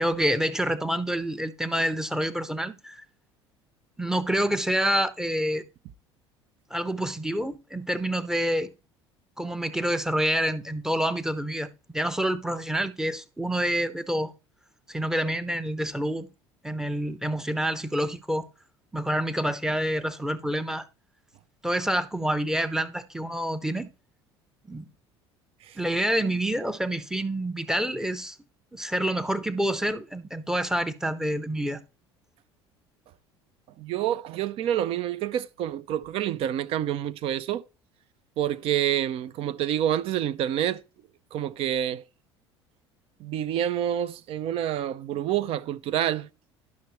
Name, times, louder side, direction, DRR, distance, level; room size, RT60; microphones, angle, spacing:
voice 1, 0.0-3.0 4.0-5.6 6.7-8.7 9.4-14.3 14.9-16.3 16.6-18.5 18.9-20.9 21.6-23.9 24.7-24.8 25.8-28.4 28.7-31.8, right 1 dB, 5° right, 0.7 m, -27 dB
voice 2, 33.8-37.6 38.4-40.8 41.3-42.0 43.2-46.3, right 11 dB, 40° right, 0.5 m, -27 dB
11.5 x 5.9 x 3.0 m
figure-of-eight pair, 65°, 14 cm